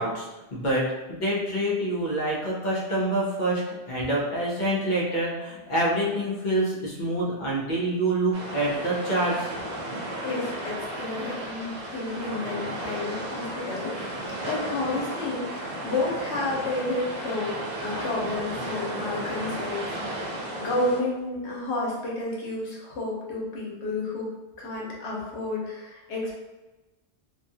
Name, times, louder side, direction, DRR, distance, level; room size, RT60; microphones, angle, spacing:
voice 1, 0.0-9.4, right 1 dB, 50° left, -4 dB, 0.8 m, -26 dB
sound 1, 8.3-21.0, right 1 dB, 50° right, 0.6 m, -34 dB
voice 2, 10.2-17.5 17.8-24.3 24.6-26.4, left 2 dB, 80° left, -4 dB, 1.1 m, -31 dB
2.7 x 2.3 x 2.7 m, 1.1 s
omnidirectional pair, 1.1 m